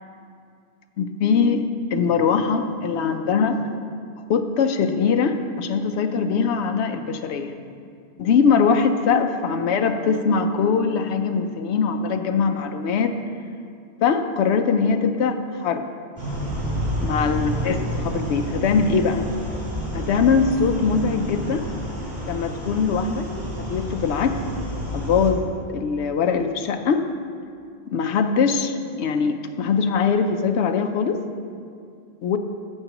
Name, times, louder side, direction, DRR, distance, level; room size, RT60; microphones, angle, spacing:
voice 1, 1.0-1.6 1.9-3.6 4.3-7.6 8.2-13.1 14.0-15.8 17.0-19.2 19.9-21.7 22.2-23.3 23.7-24.4 24.9-27.0 27.9-31.2 32.2-32.4, left 5 dB, 85° left, 7 dB, 0.9 m, -22 dB
sound 1, 16.2-25.3, equal, 45° right, 2.7 m, -29 dB
12.0 x 8.0 x 2.9 m, 2.3 s
omnidirectional pair, 1.1 m